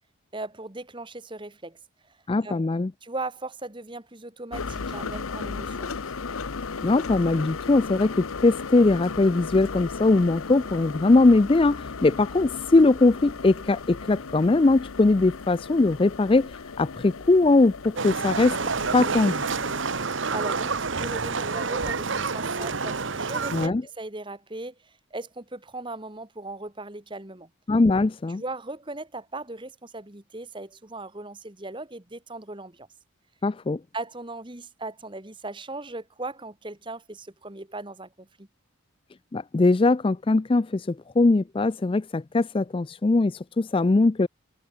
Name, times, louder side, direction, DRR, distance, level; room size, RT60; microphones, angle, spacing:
voice 1, 0.3-1.8 2.1-2.2 2.4-2.6 3.0-6.0 20.3-27.5 28.4-32.9 33.9-38.5, right 2 dB, 25° right, 1.5 m, -38 dB
voice 2, 2.3-2.9 6.8-16.5 16.8-18.6 18.9-19.5 23.5-23.8 27.7-28.4 33.4-33.8 39.3-44.3, left 3 dB, 25° left, 0.4 m, -21 dB
sound 1, 4.5-20.0, left 4 dB, 85° left, 0.9 m, -36 dB
Livestock farm animals working animals, 18.0-23.7, right 4 dB, 65° right, 1.2 m, -28 dB
head